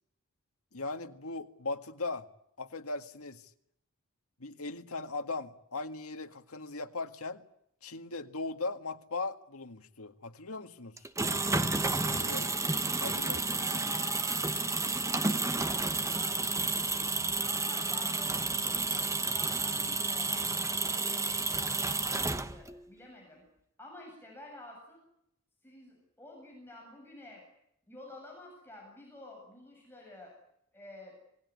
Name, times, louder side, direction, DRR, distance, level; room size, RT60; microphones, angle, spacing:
voice 1, 0.7-2.3 2.6-3.5 4.4-7.4 7.8-10.9 12.1-12.5 13.0-13.7, left 3 dB, 80° left, 1.9 m, -38 dB
sound 1, 11.0-22.8, right 3 dB, 15° right, 1.3 m, -31 dB
voice 2, 13.6-14.5 15.1-18.8 19.2-23.4 23.8-25.0 25.6-27.4 27.9-30.3 30.7-31.2, left 2 dB, 10° left, 7.6 m, -50 dB
27.0 x 19.5 x 9.7 m
head